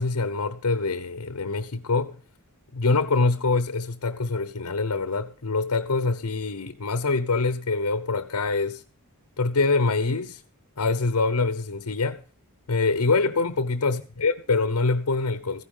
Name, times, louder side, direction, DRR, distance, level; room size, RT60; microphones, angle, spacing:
voice 1, 0.0-2.2 2.7-8.8 9.4-10.4 10.8-12.2 12.7-15.6, left 3 dB, 80° left, 0.9 m, -25 dB
15.5 x 10.0 x 5.5 m
head